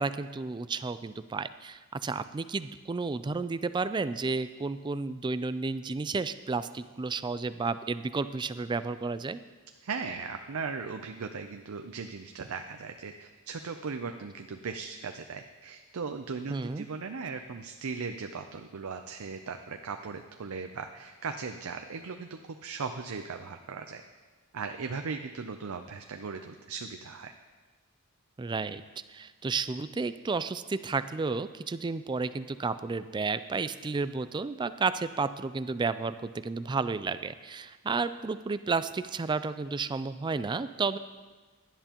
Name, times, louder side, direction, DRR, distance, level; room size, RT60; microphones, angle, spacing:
voice 1, 0.0-9.4 16.5-16.9 28.4-28.8 29.1-41.0, right 4 dB, 20° right, 13 dB, 0.3 m, -32 dB
voice 2, 9.8-24.0 24.5-27.3, right 5 dB, 70° right, 6 dB, 0.5 m, -38 dB
17.0 x 11.0 x 3.0 m, 1.4 s
head